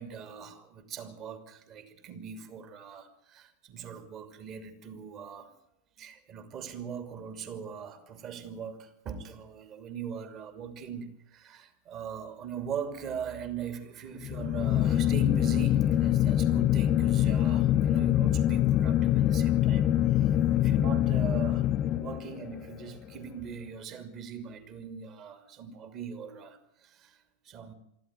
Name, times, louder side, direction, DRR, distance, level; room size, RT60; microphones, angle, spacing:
voice 1, 0.0-5.5 6.0-27.7, right 7 dB, 35° right, 2.7 m, -41 dB
sound 1, 14.2-22.6, left 12 dB, 30° left, 0.8 m, -24 dB
23.5 x 14.0 x 9.3 m
figure-of-eight pair, 90°, 0 cm